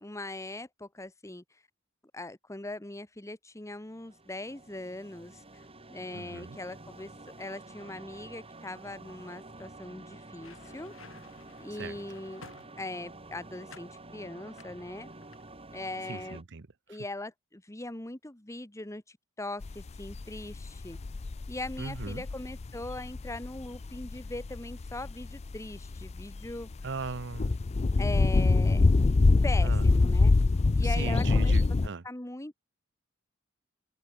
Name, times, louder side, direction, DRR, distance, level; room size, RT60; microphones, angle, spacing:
voice 1, 0.0-1.4 2.1-5.6 5.9-7.1 7.4-10.9 11.6-12.4 12.8-15.1 15.7-16.4 16.9-21.0 21.5-26.7 28.0-28.8 29.4-30.3 30.7-31.5 32.0-32.5, left 2 dB, 15° left, 1.4 m, -40 dB
sound 1, 3.8-16.4, right 2 dB, 30° right, 3.7 m, -49 dB
voice 2, 6.1-6.6 11.8-12.0 16.1-17.0 21.8-22.2 26.8-27.5 29.6-29.8 30.8-32.0, right 4 dB, 65° right, 0.8 m, -38 dB
sound 2, 10.2-13.2 13.7-14.0 14.6-15.8 16.0-16.3, left 4 dB, 85° left, 7.8 m, -54 dB
sound 3, 19.6-31.9, left 3 dB, 35° left, 0.4 m, -25 dB
head